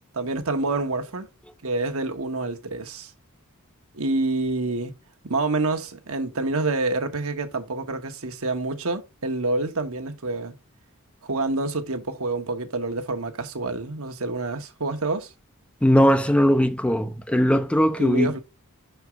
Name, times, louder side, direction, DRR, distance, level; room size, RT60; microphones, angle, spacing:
voice 1, 0.2-1.3 1.6-3.1 3.9-4.9 5.2-10.5 11.2-15.3 18.0-18.4, right 2 dB, 65° right, 1.2 m, -27 dB
voice 2, 15.8-18.3, equal, 5° left, 0.4 m, -19 dB
6.0 x 4.5 x 4.6 m
head